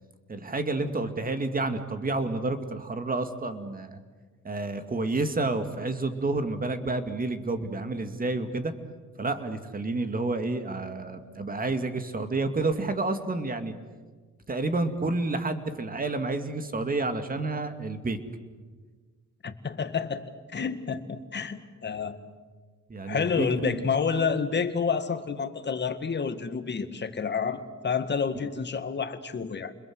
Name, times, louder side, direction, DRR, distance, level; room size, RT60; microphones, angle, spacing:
voice 1, 0.3-4.0 4.4-8.7 9.2-13.7 14.5-18.2 22.9-23.8, right 2 dB, 30° right, 8 dB, 2.4 m, -29 dB
voice 2, 19.4-20.2 20.5-22.2 23.1-29.7, left 6 dB, 35° left, 9 dB, 2.0 m, -29 dB
29.5 x 21.5 x 8.0 m, 1.4 s
cardioid pair, 90°, 30 cm